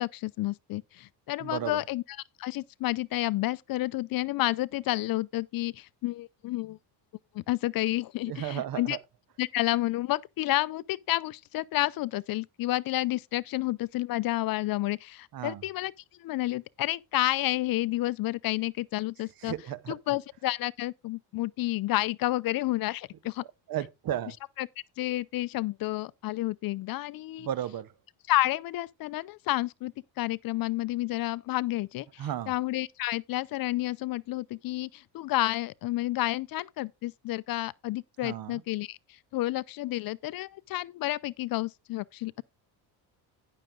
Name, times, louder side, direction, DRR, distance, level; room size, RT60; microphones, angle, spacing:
voice 1, 0.0-2.0 2.4-6.8 7.3-9.0 9.4-15.9 16.2-19.5 19.9-23.4 24.6-24.7 25.0-27.5 28.3-39.0 39.3-42.4, left 17 dB, 50° left, 0.5 m, -30 dB
voice 2, 1.4-1.8 8.3-9.0 15.3-15.6 19.4-20.0 23.7-24.4 27.4-27.9 32.2-32.5 38.2-38.6, right 11 dB, 50° right, 1.0 m, -34 dB
10.5 x 6.5 x 3.8 m
supercardioid pair, 90°, 45 cm